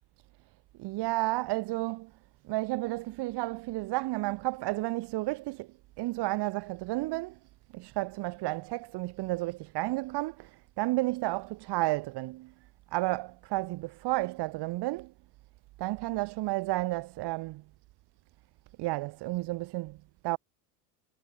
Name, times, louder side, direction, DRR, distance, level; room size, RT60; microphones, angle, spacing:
voice 1, 0.8-2.1 2.4-7.4 7.7-12.5 12.9-15.1 15.8-17.6 18.8-20.0 20.2-20.4, right 20 dB, 55° right, 7.8 m, -32 dB
hypercardioid pair, 95°, 47 cm